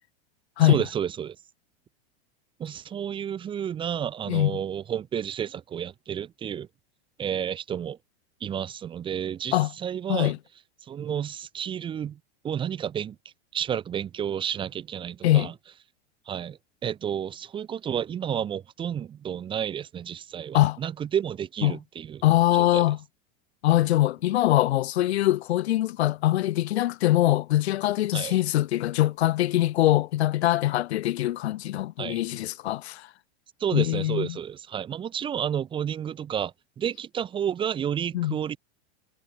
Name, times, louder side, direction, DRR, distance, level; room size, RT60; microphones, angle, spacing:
voice 1, 0.6-1.4 2.6-6.7 7.2-8.0 8.4-10.3 10.9-12.2 12.4-13.2 13.5-15.5 16.3-22.2 22.5-22.8 28.1-28.3 32.0-32.2 33.6-38.6, right 9 dB, 15° right, 1.8 m, -31 dB
voice 2, 4.3-4.6 9.5-9.7 10.1-10.4 15.2-15.5 20.5-20.8 21.6-21.8 22.2-23.0 23.6-33.1 33.7-34.3 38.1-38.4, left 14 dB, 70° left, 2.2 m, -23 dB
supercardioid pair, 175°, 33 cm